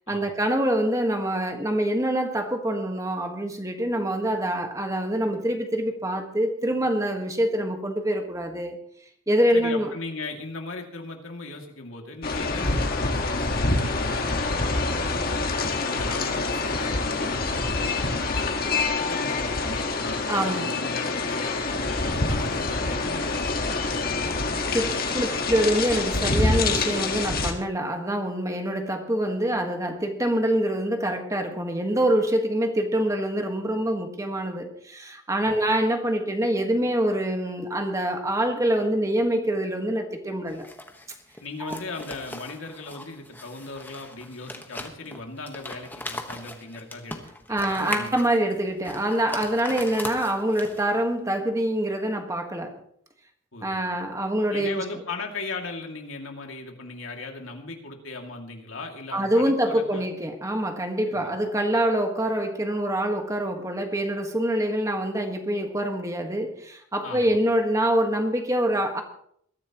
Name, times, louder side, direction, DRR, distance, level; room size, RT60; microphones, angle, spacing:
voice 1, 0.1-8.8 9.3-9.9 20.3-20.7 24.7-24.9 25.1-40.7 41.6-41.8 47.5-52.8 53.6-54.8 59.1-69.0, right 1 dB, 15° right, 4 dB, 1.5 m, -25 dB
voice 2, 9.5-18.5 18.9-24.4 24.7-24.9 35.5-35.6 41.4-47.2 47.5-48.2 53.5-53.8 54.5-60.1 61.1-61.3 67.0-67.4, left 3 dB, 80° left, 2 dB, 2.5 m, -38 dB
sound 1, 12.2-27.5, left 3 dB, 45° left, 1.7 m, -26 dB
sound 2, 40.5-51.0, left 2 dB, 10° left, 1.3 m, -39 dB
21.5 x 14.0 x 3.1 m, 0.67 s
head